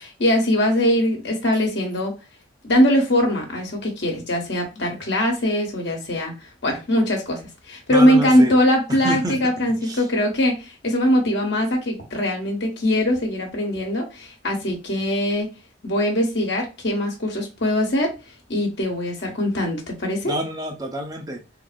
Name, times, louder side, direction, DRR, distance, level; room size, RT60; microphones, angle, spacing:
voice 1, 0.0-2.1 2.6-6.3 6.6-7.4 7.7-15.5 15.8-18.1 18.5-20.3, equal, 65° left, 1.2 m, -21 dB
voice 2, 7.9-8.5 8.9-9.4 9.8-10.0 20.3-21.4, equal, 20° right, 0.7 m, -28 dB
3.7 x 2.0 x 2.4 m
head